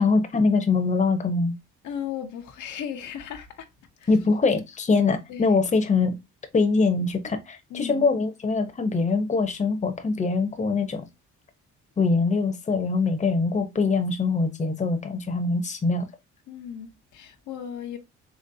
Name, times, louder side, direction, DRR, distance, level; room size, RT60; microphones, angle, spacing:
voice 1, 0.0-1.5 4.1-6.1 6.5-11.0 12.0-16.1, left 4 dB, 25° left, 0.7 m, -23 dB
voice 2, 1.8-3.7 4.0-4.1 5.3-5.6 7.7-8.1 16.5-18.0, left 9 dB, 75° left, 0.8 m, -36 dB
4.1 x 2.9 x 2.6 m
cardioid pair, 90°, 30 cm